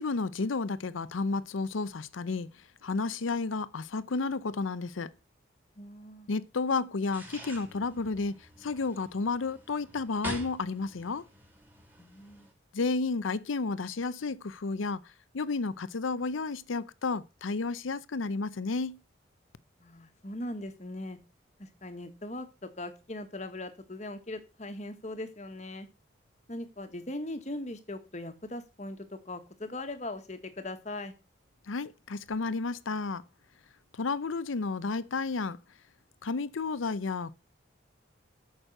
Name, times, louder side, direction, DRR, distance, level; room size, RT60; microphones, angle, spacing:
voice 1, 0.0-2.5 2.8-5.1 6.3-11.2 12.7-15.0 15.3-19.0 31.7-33.2 33.9-35.6 36.2-37.3, left 4 dB, 85° left, 0.6 m, -32 dB
voice 2, 5.8-6.3 12.0-12.5 19.8-21.2 21.6-25.9 26.5-31.1, left 1 dB, 35° left, 1.4 m, -40 dB
sound 1, 7.0-12.5, right 1 dB, 10° right, 2.9 m, -46 dB
8.8 x 6.3 x 6.6 m
head